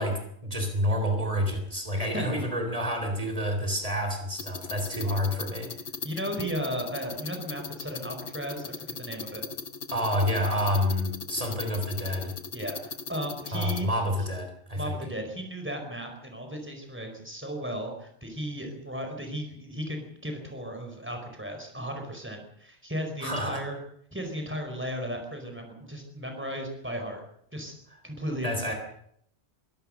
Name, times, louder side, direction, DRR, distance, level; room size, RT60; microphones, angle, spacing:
voice 1, 0.0-5.7 9.9-12.3 13.5-15.0 23.2-23.6 28.4-28.7, equal, 30° right, 5 dB, 3.7 m, -28 dB
voice 2, 2.0-2.3 6.0-9.4 12.5-13.9 14.8-23.8 24.1-27.2 27.5-27.7 28.0-28.7, equal, 10° right, 3 dB, 4.9 m, -35 dB
sound 1, 4.4-13.8, left 5 dB, 70° left, 1.6 m, -39 dB
23.5 x 17.0 x 6.6 m, 0.70 s
omnidirectional pair, 1.2 m